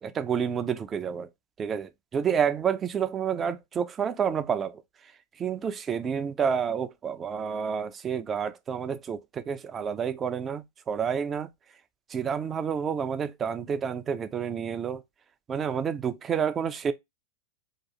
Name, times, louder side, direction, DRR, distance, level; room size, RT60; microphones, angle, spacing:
voice 1, 0.0-1.3 1.6-11.5 12.1-15.0 15.5-16.9, right 7 dB, 20° right, 0.4 m, -29 dB
2.9 x 2.3 x 4.0 m
figure-of-eight pair, 90°, 0 cm